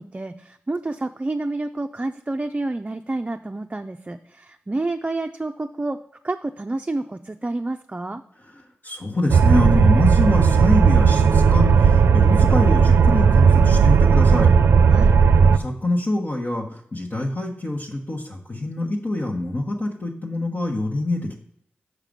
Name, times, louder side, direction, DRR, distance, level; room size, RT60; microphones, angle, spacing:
voice 1, 0.0-6.0 6.2-8.2 14.9-15.2, right 2 dB, 30° right, 6 dB, 0.5 m, -29 dB
voice 2, 8.4-14.6 15.5-21.4, left 2 dB, 45° left, 0 dB, 1.3 m, -25 dB
sound 1, 9.3-15.6, right 6 dB, 80° right, 0.5 m, -15 dB
6.6 x 4.9 x 5.2 m, 0.71 s
cardioid pair, 40°, 4 cm